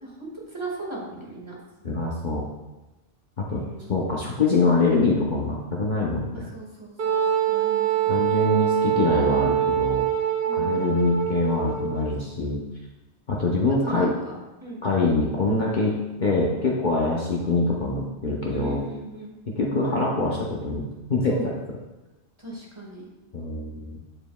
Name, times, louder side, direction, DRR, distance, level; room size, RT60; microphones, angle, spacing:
voice 1, 0.0-1.5 3.5-3.9 6.3-8.2 10.4-11.1 13.8-14.3 14.6-14.8 18.5-19.3 21.3-21.5 22.4-23.0, right 1 dB, 25° right, -4 dB, 1.7 m, -38 dB
voice 2, 1.8-2.4 3.4-3.6 3.9-6.4 8.1-10.1 10.6-12.6 13.3-14.1 14.8-15.9 16.2-18.8 19.6-20.8 21.1-21.5 23.3-24.0, left 3 dB, 45° left, -3 dB, 0.8 m, -24 dB
Wind instrument woodwind instrument, 7.0-12.1, right 10 dB, 65° right, 1.1 m, -24 dB
9.6 x 4.9 x 2.3 m, 1.1 s
omnidirectional pair, 1.2 m